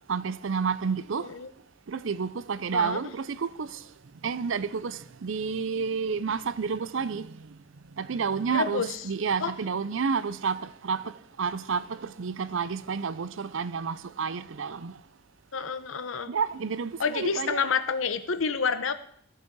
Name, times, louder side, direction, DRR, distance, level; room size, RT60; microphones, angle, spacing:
voice 1, 0.1-1.3 1.9-3.8 4.2-7.6 8.0-15.0 16.3-17.6, right 5 dB, 75° right, 0.5 m, -30 dB
voice 2, 8.5-9.0 9.4-9.5 15.5-16.3 17.0-18.9, left 5 dB, 85° left, 0.8 m, -28 dB
14.5 x 7.0 x 4.6 m
head